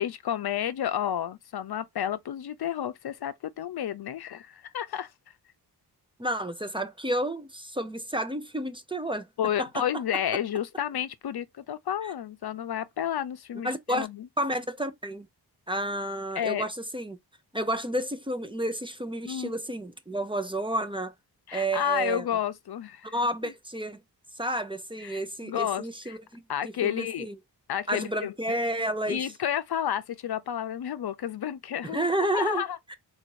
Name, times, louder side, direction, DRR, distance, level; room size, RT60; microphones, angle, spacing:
voice 1, 0.0-5.1 9.4-14.3 16.3-16.7 19.2-19.5 21.5-23.1 23.4-23.5 25.0-26.2 26.5-27.3 27.7-28.3 29.1-32.8, left 10 dB, 65° left, 0.6 m, -31 dB
voice 2, 6.2-9.3 9.6-9.9 12.0-12.1 13.6-14.1 14.4-15.3 15.7-17.2 17.5-21.1 21.5-22.2 23.0-24.0 24.4-27.4 27.9-29.3 31.8-32.6 32.9-33.0, right 1 dB, 10° right, 0.6 m, -31 dB
3.9 x 2.6 x 4.6 m
wide cardioid pair, 120°, 41 cm